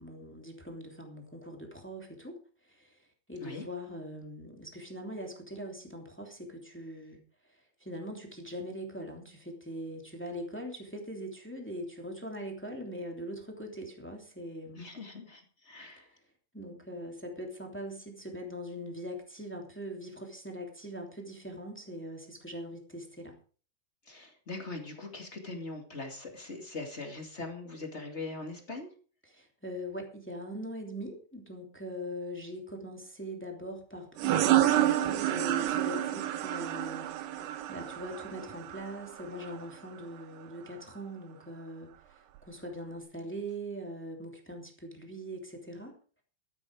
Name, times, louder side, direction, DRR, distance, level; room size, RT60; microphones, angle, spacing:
voice 1, 0.0-2.4 2.6-7.2 7.5-14.9 16.5-23.4 29.3-45.9, equal, 5° left, 2 dB, 2.0 m, -42 dB
voice 2, 14.7-16.1 24.0-28.9, left 3 dB, 25° left, 3 dB, 1.6 m, -41 dB
sound 1, 34.2-39.5, right 13 dB, 80° right, 3.0 m, -29 dB
13.0 x 12.0 x 4.8 m, 0.40 s
omnidirectional pair, 4.6 m